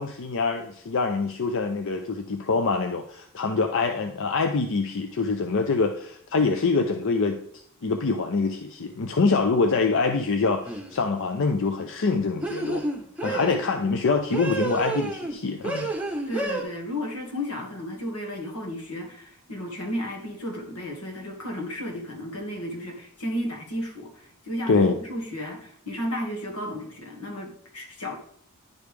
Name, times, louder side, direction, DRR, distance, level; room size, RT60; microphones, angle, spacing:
voice 1, 0.0-7.4 7.8-12.8 13.2-15.9 24.7-25.0, left 4 dB, 60° left, 5 dB, 0.5 m, -25 dB
sound 1, 10.7-11.0 12.4-13.6 14.3-15.4 15.6-16.6, right 2 dB, 5° right, 1.0 m, -30 dB
voice 2, 13.2-14.0 16.3-28.2, left 1 dB, 90° left, 1 dB, 1.9 m, -33 dB
10.5 x 4.9 x 3.4 m, 0.63 s
head